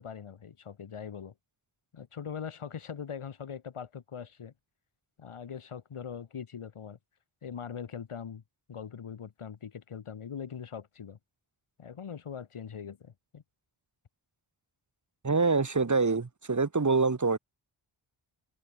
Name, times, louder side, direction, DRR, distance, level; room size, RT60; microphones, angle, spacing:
voice 1, 0.0-1.3 1.9-4.5 5.2-7.0 7.4-8.4 8.7-11.2 11.8-13.4, left 7 dB, 85° left, 3.7 m, -41 dB
voice 2, 15.2-17.4, right 4 dB, 35° right, 1.9 m, -25 dB
cardioid pair, 60°, 49 cm